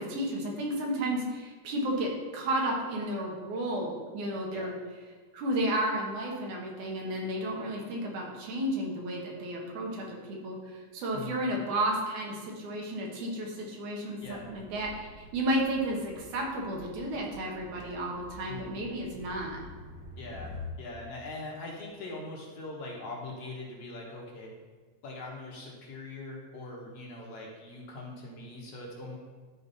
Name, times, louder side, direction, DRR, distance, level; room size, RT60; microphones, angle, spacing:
voice 1, 0.0-4.8 5.3-19.6, right 1 dB, 80° right, -1 dB, 2.9 m, -32 dB
voice 2, 11.1-11.5 14.2-14.5 18.5-18.8 20.2-24.5 25.0-29.2, left 2 dB, 60° left, -2 dB, 2.1 m, -42 dB
sound 1, 14.2-20.7, left 2 dB, 50° right, 1.5 m, -47 dB
12.5 x 4.6 x 4.1 m, 1.4 s
omnidirectional pair, 3.4 m